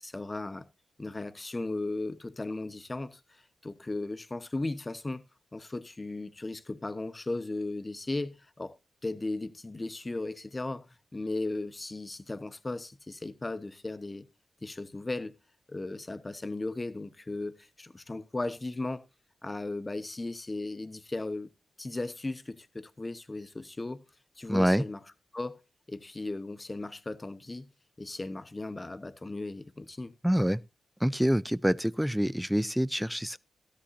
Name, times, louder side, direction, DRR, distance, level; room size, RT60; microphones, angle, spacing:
voice 1, 0.0-0.7 1.0-5.2 5.5-8.7 9.0-10.9 11.1-14.3 14.6-15.4 15.7-19.0 19.4-21.5 21.8-24.0 24.4-25.0 25.3-25.6 25.9-27.7 28.0-30.1, left 2 dB, 30° left, 1.1 m, -36 dB
voice 2, 24.5-24.8 30.2-30.6 31.0-33.4, equal, 5° right, 0.5 m, -26 dB
13.0 x 11.5 x 2.7 m
cardioid pair, 50°, 0 cm